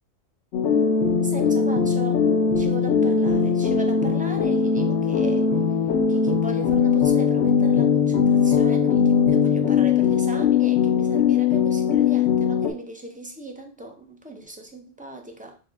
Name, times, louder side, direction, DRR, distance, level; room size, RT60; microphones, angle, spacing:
sound 1, 0.5-12.7, left 6 dB, 85° left, 0.9 m, -20 dB
voice 1, 1.2-2.2 2.6-5.5 6.1-15.6, right 2 dB, 15° right, 3 dB, 0.3 m, -37 dB
6.2 x 2.1 x 3.3 m, 0.35 s
omnidirectional pair, 1.2 m